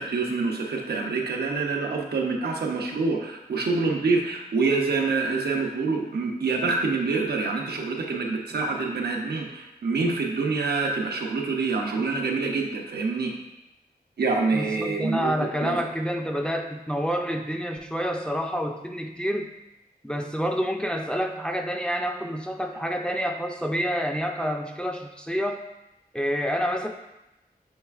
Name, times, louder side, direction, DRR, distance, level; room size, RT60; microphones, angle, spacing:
voice 1, 0.0-13.4 14.2-15.8, right 4 dB, 85° right, 1 dB, 0.6 m, -26 dB
voice 2, 14.5-19.5 20.0-25.6 26.1-26.9, equal, 5° left, 3 dB, 0.4 m, -28 dB
5.4 x 3.2 x 2.4 m, 0.93 s
cardioid pair, 55°, 16 cm